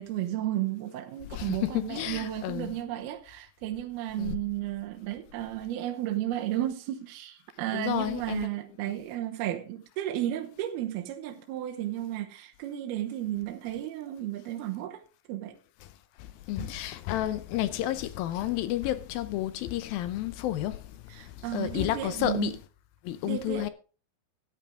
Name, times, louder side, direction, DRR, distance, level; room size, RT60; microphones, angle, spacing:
voice 1, 0.0-15.0 15.3-15.6 16.6-16.7 21.1-22.6 23.2-23.7, right 13 dB, 75° right, 2.8 m, -33 dB
voice 2, 1.3-2.7 4.2-4.4 7.7-8.5 16.5-20.8 21.5-22.6 23.1-23.7, left 13 dB, 80° left, 2.2 m, -31 dB
14.0 x 9.7 x 3.6 m
omnidirectional pair, 4.7 m